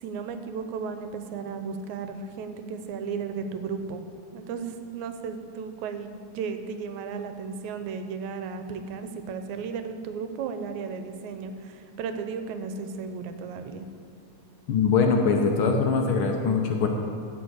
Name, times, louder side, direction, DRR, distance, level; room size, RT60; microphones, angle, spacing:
voice 1, 0.0-4.1 4.3-13.9, right 5 dB, 80° right, 8 dB, 2.1 m, -34 dB
voice 2, 14.7-16.9, left 5 dB, 75° left, 2 dB, 1.2 m, -22 dB
15.0 x 5.0 x 8.0 m, 2.5 s
omnidirectional pair, 3.3 m